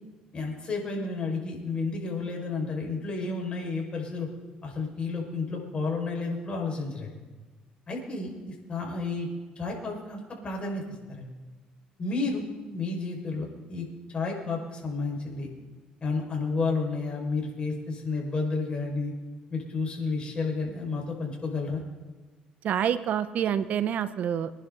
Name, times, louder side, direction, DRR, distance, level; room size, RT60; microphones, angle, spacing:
voice 1, 0.3-4.3 4.6-7.1 7.9-9.3 9.6-10.8 11.1-11.3 12.0-15.5 16.0-19.1 19.5-21.8, left 3 dB, 35° left, 0 dB, 5.4 m, -31 dB
voice 2, 22.6-24.6, right 9 dB, 60° right, 13 dB, 0.8 m, -27 dB
25.0 x 11.0 x 4.0 m, 1.3 s
cardioid pair, 95°, 3 cm